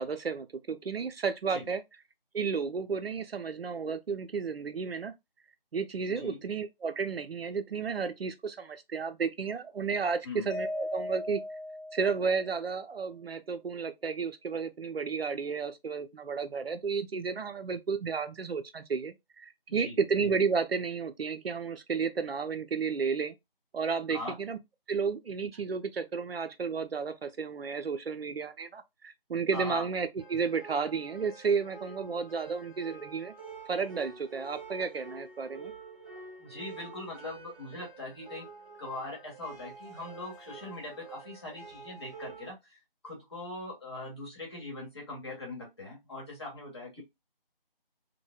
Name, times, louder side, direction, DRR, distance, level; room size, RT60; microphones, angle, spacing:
voice 1, 0.0-1.8 2.3-5.1 5.7-11.4 11.9-23.3 23.7-24.6 24.9-33.3 33.7-35.7, right 5 dB, 85° right, 0.6 m, -32 dB
voice 2, 6.1-6.4 10.2-10.5 19.7-19.9 24.1-24.4 29.5-29.9 36.4-38.5 38.8-47.0, left 2 dB, 30° left, 1.1 m, -41 dB
Mallet percussion, 10.5-12.8, left 1 dB, 55° left, 1.0 m, -38 dB
sound 1, 30.2-42.5, right 4 dB, 35° right, 1.7 m, -48 dB
3.1 x 2.2 x 2.2 m
figure-of-eight pair, 165°, 29 cm